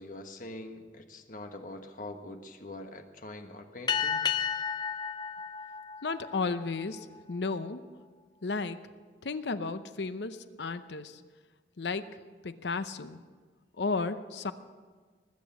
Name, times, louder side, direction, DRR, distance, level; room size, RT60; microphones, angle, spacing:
voice 1, 0.0-4.3, left 2 dB, 50° left, 5 dB, 1.3 m, -44 dB
sound 1, 3.9-6.8, left 8 dB, 25° left, 0.6 m, -32 dB
voice 2, 6.0-7.8 8.4-8.8 9.2-11.2 11.8-12.2 12.4-13.2 13.8-14.5, left 4 dB, 70° left, 12 dB, 0.7 m, -33 dB
20.0 x 8.4 x 7.0 m, 1.5 s
head